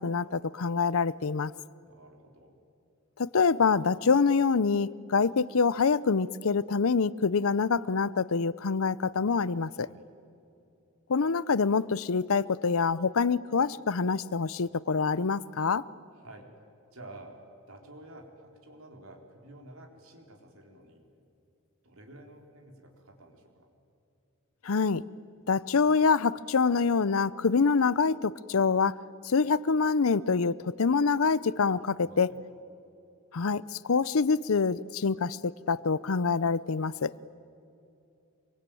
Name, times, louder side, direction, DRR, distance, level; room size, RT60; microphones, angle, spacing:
voice 1, 0.0-1.5 3.2-9.9 11.1-15.8 24.6-25.0 25.5-29.0 29.2-32.3 33.3-37.1, left 5 dB, 75° left, 19 dB, 0.6 m, -26 dB
voice 2, 1.9-2.6 9.8-10.1 16.1-16.5 16.9-21.1 21.8-23.7 31.7-32.4 36.7-37.3, right 1 dB, 75° right, 2 dB, 4.4 m, -51 dB
25.5 x 23.5 x 9.2 m, 2.7 s
head